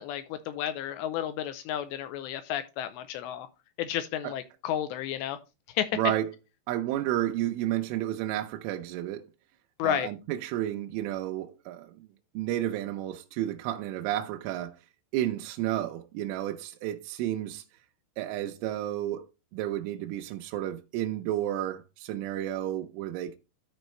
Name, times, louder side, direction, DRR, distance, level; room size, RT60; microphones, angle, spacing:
voice 1, 0.0-3.5 3.8-5.4 5.8-5.9 9.8-10.1, left 11 dB, 85° left, 2.6 m, -32 dB
voice 2, 5.9-6.3 6.7-9.3 9.8-12.0 12.3-14.8 15.1-17.6 18.2-19.2 19.5-23.4, right 13 dB, 85° right, 3.2 m, -31 dB
13.0 x 4.5 x 3.1 m
omnidirectional pair, 5.5 m